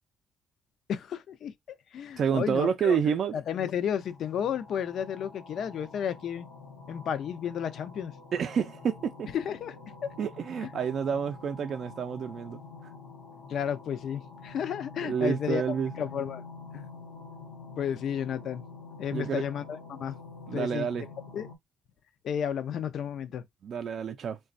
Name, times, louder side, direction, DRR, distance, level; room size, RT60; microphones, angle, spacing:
voice 1, 0.9-1.5 1.9-3.0 3.3-6.5 6.9-8.1 9.3-10.1 10.6-10.7 13.5-15.6 16.0-16.4 16.7-16.9 17.8-18.6 19.0-20.2 20.5-20.9 21.3-21.5 22.2-23.4, left 8 dB, 70° left, 0.4 m, -32 dB
voice 2, 2.2-3.3 8.3-9.3 10.2-12.6 15.0-15.9 19.1-19.4 20.5-21.1 23.6-24.4, right 7 dB, 60° right, 0.3 m, -29 dB
sound 1, 3.9-21.6, left 4 dB, 90° left, 0.7 m, -47 dB
3.9 x 2.2 x 2.5 m
cardioid pair, 90°, 0 cm